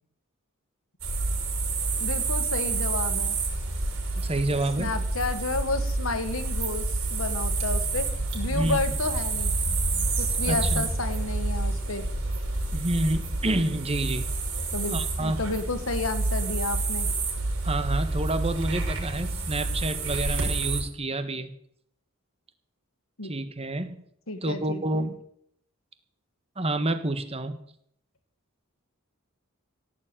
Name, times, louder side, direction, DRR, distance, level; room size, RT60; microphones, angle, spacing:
sound 1, 1.0-20.8, right 3 dB, 65° right, 6.3 m, -28 dB
voice 1, 2.0-3.4 4.8-6.8 7.1-9.5 10.2-12.0 14.7-17.1 23.2-23.3 24.3-25.1, left 3 dB, 70° left, 10 dB, 1.7 m, -31 dB
voice 2, 4.1-4.9 8.5-8.8 9.7-10.0 10.4-10.8 12.7-14.4 14.9-15.4 17.6-21.5 23.2-24.0 24.4-25.2 26.6-27.6, right 1 dB, 30° right, 10 dB, 1.4 m, -28 dB
17.0 x 7.1 x 9.0 m, 0.69 s
head